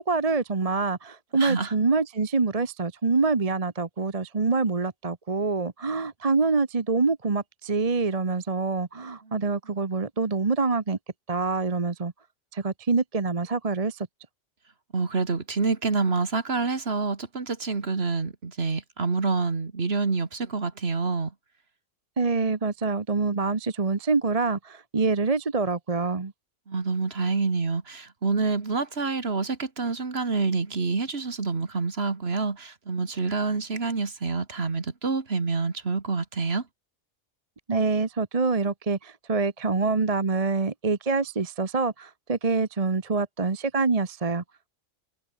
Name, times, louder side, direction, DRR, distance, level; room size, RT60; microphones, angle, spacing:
voice 1, 0.0-11.0 11.3-12.1 12.5-14.1 22.2-26.3 37.7-44.4, right 4 dB, 30° right, 1.1 m, -26 dB
voice 2, 1.3-1.7 9.3-9.4 14.9-21.3 26.7-36.6, right 4 dB, 50° right, 2.2 m, -27 dB
omnidirectional pair, 1.4 m